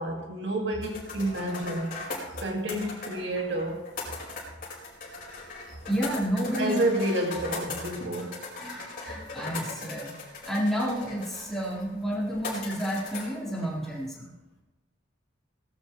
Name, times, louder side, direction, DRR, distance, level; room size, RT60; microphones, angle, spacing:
voice 1, 0.0-2.0 2.4-3.9 6.5-8.4, right 1 dB, 75° right, 1 dB, 2.3 m, -29 dB
sound 1, 0.8-14.1, left 3 dB, 50° left, 5.3 m, -39 dB
voice 2, 5.9-6.8 8.6-10.1 10.4-14.3, equal, ahead, -6 dB, 4.2 m, -30 dB
18.5 x 12.5 x 3.3 m, 1.0 s
head